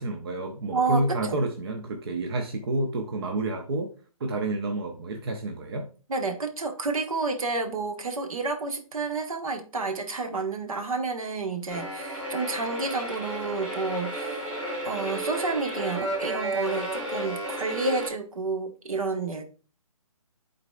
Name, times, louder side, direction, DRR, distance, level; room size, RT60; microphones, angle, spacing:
voice 1, 0.0-3.9 4.2-5.9, right 2 dB, 45° right, 0.8 m, -29 dB
voice 2, 0.7-1.4 6.1-14.5 14.8-19.4, right 3 dB, 70° right, 1.2 m, -30 dB
sound 1, 11.7-18.1, right 1 dB, 5° right, 1.3 m, -32 dB
10.5 x 4.0 x 2.3 m
hypercardioid pair, 155°, 18 cm